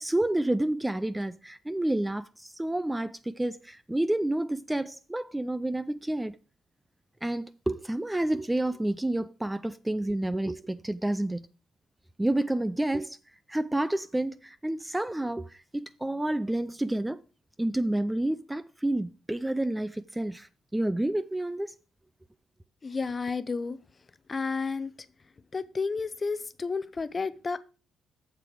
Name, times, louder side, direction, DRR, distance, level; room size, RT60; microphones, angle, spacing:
voice 1, 0.0-6.4 7.2-11.5 12.2-13.2 13.5-17.2 17.6-21.7, right 1 dB, 10° right, 0.4 m, -29 dB
voice 2, 22.8-23.8 24.3-24.9 25.5-27.6, left 4 dB, 30° left, 0.7 m, -31 dB
7.8 x 7.0 x 4.9 m
cardioid pair, 90°, 0 cm